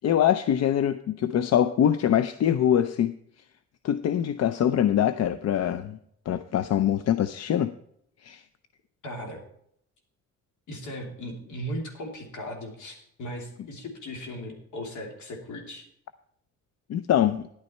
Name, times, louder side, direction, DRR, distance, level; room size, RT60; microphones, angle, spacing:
voice 1, 0.0-3.2 3.8-6.0 6.3-7.7 8.2-8.4 16.9-17.4, left 10 dB, 60° left, 12 dB, 0.6 m, -23 dB
voice 2, 9.0-9.4 10.7-15.9, equal, 75° left, 2 dB, 3.0 m, -37 dB
10.5 x 9.5 x 4.3 m, 0.71 s
cardioid pair, 90°, 30 cm